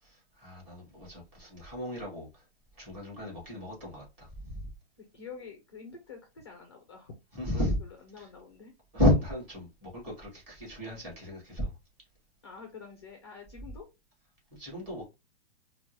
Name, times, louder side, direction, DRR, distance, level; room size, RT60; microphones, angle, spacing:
voice 1, 0.0-2.4 2.8-4.7 7.3-7.8 8.2-8.3 8.9-11.7 14.5-15.0, left 1 dB, 20° right, 2.3 m, -32 dB
voice 2, 5.0-7.1 7.5-8.7 12.4-13.9, left 5 dB, 25° left, 0.4 m, -47 dB
4.4 x 2.2 x 3.0 m
hypercardioid pair, 170°, 35 cm